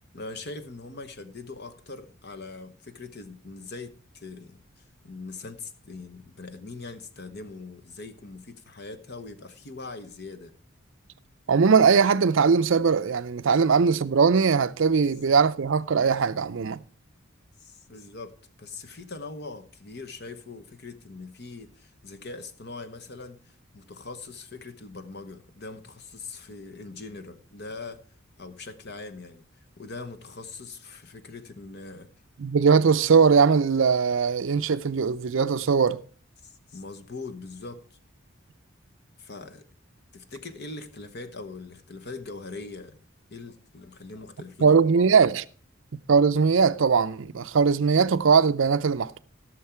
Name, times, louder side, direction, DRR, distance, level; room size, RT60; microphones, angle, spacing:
voice 1, 0.1-4.6 5.0-10.5 17.6-18.3 18.6-28.0 28.4-29.4 29.8-32.1 36.4-38.0 39.2-39.6 40.1-43.0 43.3-45.1, left 3 dB, 50° left, 1.0 m, -41 dB
voice 2, 11.5-16.8 32.4-36.0 44.6-45.4 45.9-49.2, right 5 dB, 65° right, 0.5 m, -20 dB
15.5 x 6.5 x 4.4 m
head